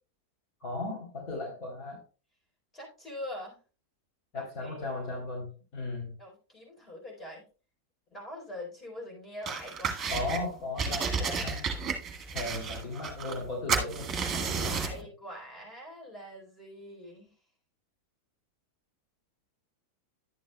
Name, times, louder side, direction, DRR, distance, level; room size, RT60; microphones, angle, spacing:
voice 1, 0.6-2.0 4.3-6.1 10.1-11.7 12.3-15.1, left 2 dB, 35° left, -1 dB, 3.4 m, -36 dB
voice 2, 2.7-3.6 4.3-4.8 6.2-7.4 8.1-10.3 12.3-12.7 14.6-17.3, left 1 dB, 15° left, -1 dB, 4.2 m, -43 dB
sound 1, 9.5-10.4 10.8-13.4 13.7-15.0, right 5 dB, 25° right, 1.8 m, -32 dB
11.5 x 9.4 x 2.3 m, 0.35 s
figure-of-eight pair, 90°, 0 cm